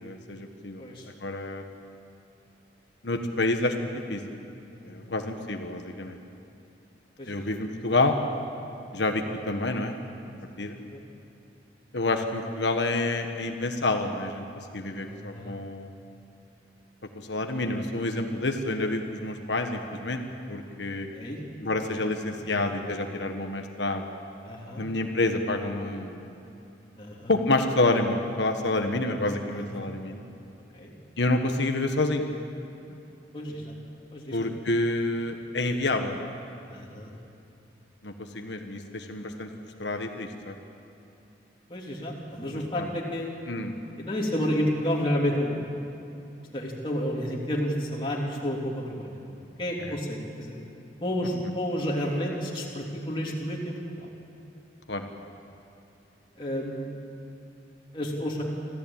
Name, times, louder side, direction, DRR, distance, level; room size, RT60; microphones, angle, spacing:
voice 1, 0.0-0.8 1.2-1.6 3.0-4.2 4.8-6.2 7.3-8.2 8.9-9.9 10.6-10.8 11.9-15.9 17.1-20.2 20.5-21.1 21.6-24.1 24.8-26.4 27.3-30.2 31.2-32.2 34.3-36.3 38.0-39.5 39.8-40.5 42.5-42.9 43.5-43.7 49.8-49.9 54.9-55.1, left 2 dB, 80° left, 4 dB, 1.5 m, -28 dB
voice 2, 0.8-1.1 4.7-5.1 7.2-7.3 10.9-11.0 15.0-15.5 21.1-21.4 22.3-22.7 24.4-24.8 27.0-27.3 29.5-29.8 30.7-30.9 33.3-33.7 34.1-34.6 36.7-37.1 41.7-43.3 44.0-45.7 46.5-49.2 49.6-50.6 51.0-54.1 56.4-56.9 57.9-58.4, equal, 25° left, -4 dB, 3.2 m, -31 dB
25.5 x 15.5 x 8.9 m, 2.7 s
head